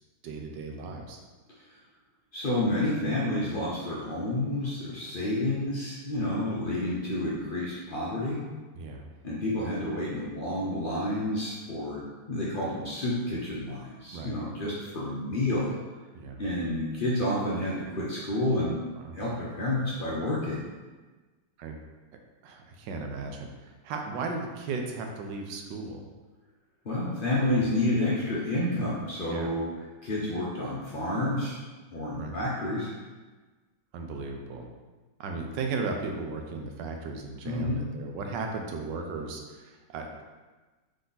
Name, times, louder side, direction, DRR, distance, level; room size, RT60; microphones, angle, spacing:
voice 1, 0.2-1.2 6.7-6.8 8.7-9.1 14.1-14.4 16.1-16.4 19.0-19.2 21.6-21.8 22.4-23.5 23.8-26.0 29.3-29.5 32.1-32.4 33.9-34.7 35.2-40.2, right 4 dB, 85° right, 3 dB, 1.3 m, -36 dB
voice 2, 2.3-8.4 9.2-15.7 16.4-18.8 19.1-20.6 26.8-29.7 30.0-31.5 31.9-32.9 37.4-37.8, left 1 dB, 65° left, -6 dB, 0.5 m, -29 dB
3.8 x 3.3 x 3.9 m, 1.3 s
omnidirectional pair, 1.9 m